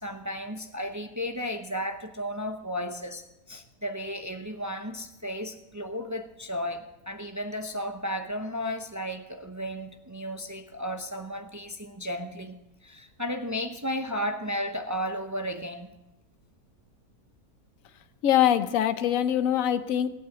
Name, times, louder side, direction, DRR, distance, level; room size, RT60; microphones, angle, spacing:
voice 1, 0.0-12.5 12.8-15.9, equal, 25° right, 6 dB, 0.3 m, -34 dB
voice 2, 18.2-20.1, left 10 dB, 65° left, 11 dB, 1.1 m, -23 dB
19.5 x 8.5 x 7.8 m, 0.95 s
omnidirectional pair, 1.7 m